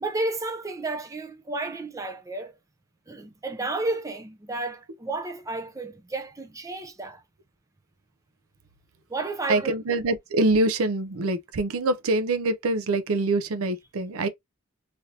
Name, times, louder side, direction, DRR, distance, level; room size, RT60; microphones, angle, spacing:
voice 1, 0.0-2.6 3.1-7.2 9.1-9.7, right 2 dB, 15° right, 0.4 m, -32 dB
voice 2, 9.5-14.3, right 2 dB, 85° right, 0.5 m, -25 dB
3.3 x 2.6 x 2.7 m
head